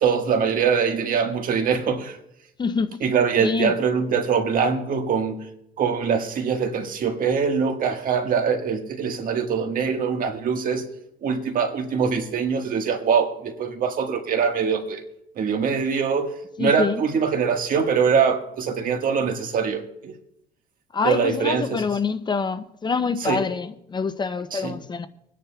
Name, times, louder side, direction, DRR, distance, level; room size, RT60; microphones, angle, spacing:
voice 1, 0.0-2.2 3.0-5.4 5.8-10.9 11.2-15.0 15.4-20.1 21.0-21.8 23.2-23.4 24.5-24.8, right 6 dB, 55° right, 1.6 m, -23 dB
voice 2, 2.6-3.0 3.4-3.7 16.6-17.0 20.9-25.1, left 5 dB, 25° left, 0.5 m, -26 dB
27.0 x 10.0 x 2.3 m
cardioid pair, 110°, 17 cm